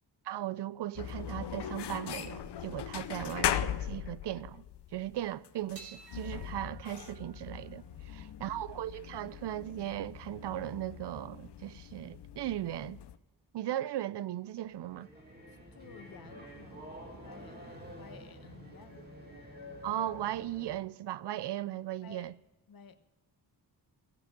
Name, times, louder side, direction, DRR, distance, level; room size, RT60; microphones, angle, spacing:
voice 1, 0.2-4.6 4.9-7.8 8.4-13.0 13.5-15.1 19.8-22.3, right 13 dB, 80° right, 0.5 m, -37 dB
sound 1, 1.0-13.2, left 10 dB, 80° left, 0.7 m, -39 dB
sound 2, 5.7-12.3, right 4 dB, 60° right, 2.7 m, -58 dB
voice 2, 8.1-8.4 15.5-19.1 22.0-22.3 22.7-23.0, left 6 dB, 60° left, 1.0 m, -54 dB
sound 3, 14.6-20.8, equal, 25° right, 2.5 m, -49 dB
15.5 x 7.7 x 5.9 m
wide cardioid pair, 170°, 40 cm